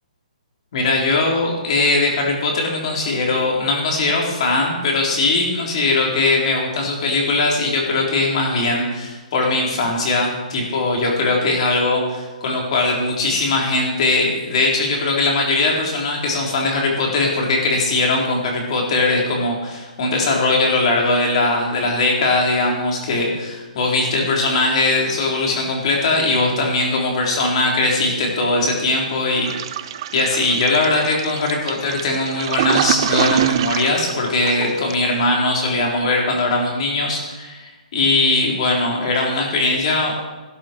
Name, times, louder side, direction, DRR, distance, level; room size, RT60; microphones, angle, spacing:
voice 1, 0.7-29.5 29.8-29.9 30.1-40.1, left 2 dB, 45° left, -1 dB, 4.0 m, -20 dB
Toilet flush, 29.4-35.2, right 11 dB, 35° right, 0.4 m, -25 dB
14.5 x 12.5 x 4.6 m, 1.2 s
hypercardioid pair, 160°, 4 cm